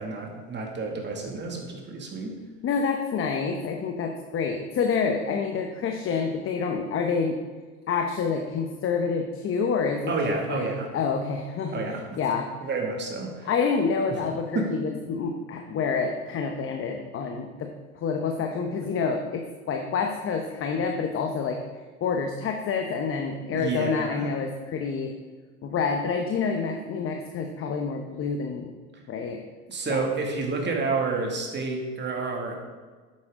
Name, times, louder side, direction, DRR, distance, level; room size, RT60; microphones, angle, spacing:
voice 1, 0.0-2.4 10.1-10.9 11.7-12.2 12.6-13.5 14.1-14.2 14.5-14.7 23.5-24.3 29.7-32.6, right 3 dB, 25° right, 1 dB, 2.3 m, -30 dB
voice 2, 2.6-7.4 7.9-10.7 10.9-12.5 13.4-21.6 22.0-25.1 25.6-28.7 29.1-29.5 29.9-30.1, left 5 dB, 30° left, 3 dB, 1.0 m, -28 dB
10.5 x 8.6 x 3.8 m, 1.4 s
hypercardioid pair, 105°, 44 cm